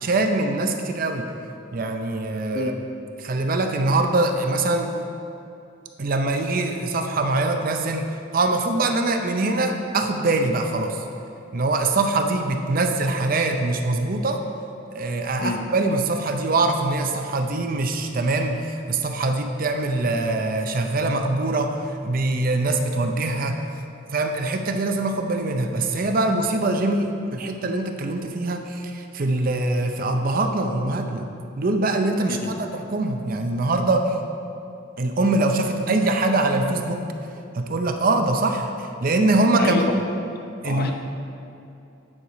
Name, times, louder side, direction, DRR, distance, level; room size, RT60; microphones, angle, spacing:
voice 1, 0.0-1.3 1.7-2.7 3.2-4.9 6.0-8.1 8.3-11.0 11.5-14.4 14.9-23.7 24.1-31.3 31.6-34.2 35.0-37.0 37.6-38.7 39.0-39.8 40.6-40.9, right 2 dB, 45° right, 5 dB, 0.5 m, -23 dB
voice 2, 2.5-2.7 15.4-15.6 32.3-32.5 39.6-39.8 40.6-40.9, left 3 dB, 50° left, 3 dB, 0.7 m, -27 dB
9.6 x 4.8 x 5.0 m, 2.7 s
head